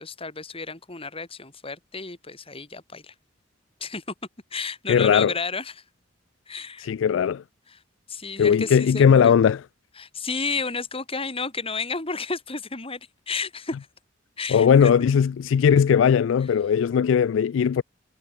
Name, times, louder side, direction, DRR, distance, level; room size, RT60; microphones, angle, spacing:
voice 1, 0.0-3.1 3.8-4.0 4.5-5.7 6.5-6.9 7.7-7.8 8.1-9.4 10.0-13.0 13.3-13.8 14.4-14.9, left 4 dB, 30° left, 3.4 m, -32 dB
voice 2, 4.9-5.3 6.8-7.4 8.4-9.6 14.5-17.8, left 7 dB, 80° left, 0.3 m, -19 dB
head